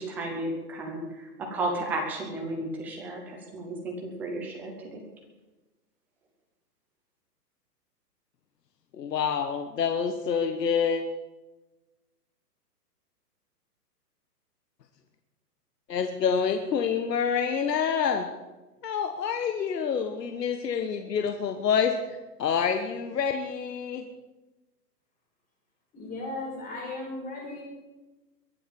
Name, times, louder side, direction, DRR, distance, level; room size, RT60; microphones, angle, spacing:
voice 1, 0.0-5.0, right 2 dB, 5° right, 1 dB, 0.6 m, -33 dB
voice 2, 9.0-11.0 15.9-18.3 18.8-24.0, left 6 dB, 75° left, 6 dB, 1.5 m, -27 dB
voice 3, 25.9-27.6, left 2 dB, 15° left, -2 dB, 4.5 m, -36 dB
22.0 x 7.6 x 7.1 m, 1.1 s
hypercardioid pair, 155°, 49 cm